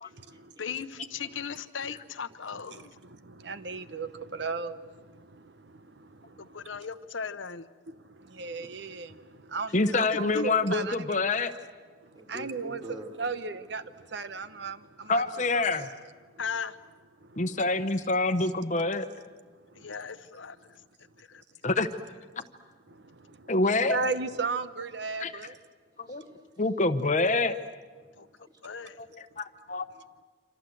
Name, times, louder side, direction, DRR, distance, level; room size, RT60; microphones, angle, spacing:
voice 1, 0.0-0.8 6.0-6.7 9.5-9.8 12.1-13.2 14.8-14.9 16.5-16.6 25.9-26.6 28.5-28.6 29.9-30.0, equal, 20° right, 3.1 m, -47 dB
voice 2, 0.6-3.0 6.4-7.7 10.3-10.5 16.4-16.8 19.8-20.8 21.2-21.4 28.2-28.3 28.6-29.0, left 6 dB, 80° left, 1.0 m, -37 dB
voice 3, 3.4-4.7 8.4-9.1 9.5-11.2 12.3-12.8 13.2-13.8 14.1-15.2 15.5-15.9 23.9-25.5, right 4 dB, 60° right, 0.9 m, -34 dB
voice 4, 9.7-11.5 15.1-15.9 17.4-19.1 21.6-21.9 22.4-22.5 23.5-24.0 25.2-25.3 26.0-26.2 26.6-27.6 29.0-29.9, left 3 dB, 40° left, 1.0 m, -26 dB
27.0 x 26.5 x 7.9 m
head